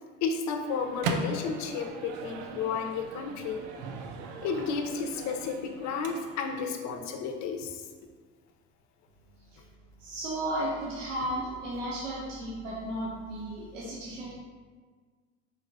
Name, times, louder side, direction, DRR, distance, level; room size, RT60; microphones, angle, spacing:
voice 1, 0.2-3.7 4.4-7.8, left 5 dB, 50° left, 4 dB, 0.7 m, -32 dB
Microwave oven, 0.6-6.6, right 3 dB, 55° right, 0.6 m, -38 dB
voice 2, 10.0-14.3, right 1 dB, 80° right, -5 dB, 0.9 m, -34 dB
4.8 x 4.0 x 2.7 m, 1.5 s
figure-of-eight pair, 65°, 37 cm